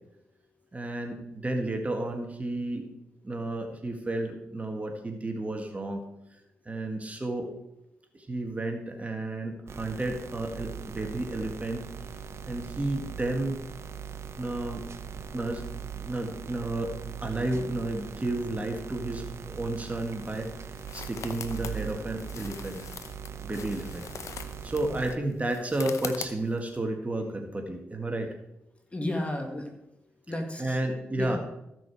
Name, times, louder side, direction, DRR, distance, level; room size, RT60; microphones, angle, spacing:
voice 1, 0.7-2.9 3.2-6.0 6.7-7.5 8.1-11.8 12.5-13.6 14.4-14.9 15.3-15.6 16.0-16.9 17.2-22.8 23.4-24.0 24.4-28.3 30.6-31.4, right 2 dB, 30° right, 4 dB, 1.7 m, -32 dB
sound 1, 9.7-25.2, right 7 dB, 60° right, 0.8 m, -40 dB
sound 2, 19.6-26.8, left 7 dB, 80° left, 0.8 m, -43 dB
voice 2, 28.9-29.7 30.3-30.8 31.1-31.4, left 1 dB, 25° left, 3 dB, 2.1 m, -32 dB
14.5 x 6.3 x 4.7 m, 0.86 s
cardioid pair, 65°, 5 cm